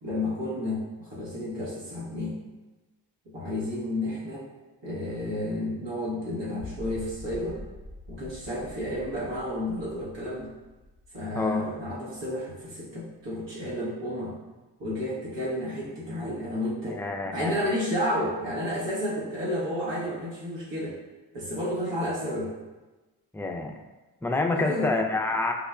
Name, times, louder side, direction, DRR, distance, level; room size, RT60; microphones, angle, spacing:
voice 1, 0.0-2.4 3.3-4.5 4.8-7.6 8.1-10.5 11.1-14.4 14.8-21.0 21.3-22.5 24.5-24.9, left 1 dB, 65° right, -7 dB, 1.3 m, -31 dB
sound 1, 6.6-12.7, left 2 dB, 35° left, 0.8 m, -45 dB
voice 2, 16.8-17.6 23.3-23.7 24.2-25.5, left 2 dB, 5° left, 2 dB, 0.4 m, -27 dB
5.4 x 2.1 x 2.4 m, 1.2 s
supercardioid pair, 45°, 45 cm